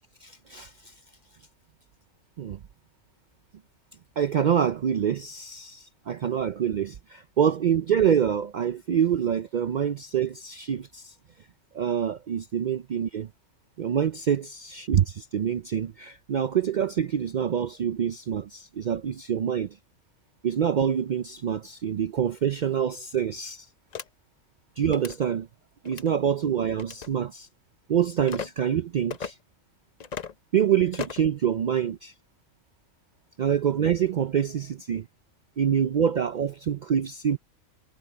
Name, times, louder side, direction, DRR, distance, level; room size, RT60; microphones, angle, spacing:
voice 1, 0.2-0.9 2.4-2.6 4.2-11.1 11.7-13.3 13.8-19.8 20.4-23.7 24.8-25.5 25.8-27.5 27.9-29.4 30.5-32.1 33.4-35.1 35.6-37.4, right 8 dB, 80° right, 0.4 m, -26 dB
sound 1, 23.9-24.1 24.9-25.2 25.8-26.1 26.8-27.1 28.3-28.5 29.1-29.3 30.0-30.3 30.9-31.3, left 7 dB, 45° left, 0.6 m, -35 dB
omnidirectional pair, 1.4 m